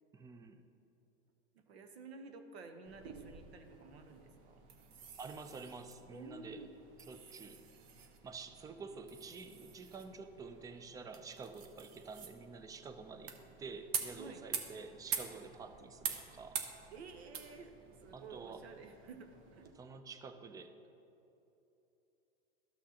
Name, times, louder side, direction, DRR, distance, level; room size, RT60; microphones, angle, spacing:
voice 1, 0.1-0.6 5.2-6.6 7.1-7.6 8.2-13.3 13.6-16.6 18.1-18.6 19.7-20.7, right 4 dB, 10° right, 9 dB, 0.3 m, -49 dB
voice 2, 1.5-4.6 6.1-6.7 14.2-14.4 16.9-17.7 18.0-19.7, right 4 dB, 90° right, 6 dB, 0.9 m, -52 dB
sound 1, 2.8-19.7, right 7 dB, 50° right, 0.8 m, -47 dB
13.0 x 6.1 x 2.8 m, 2.9 s
hypercardioid pair, 115°, 31 cm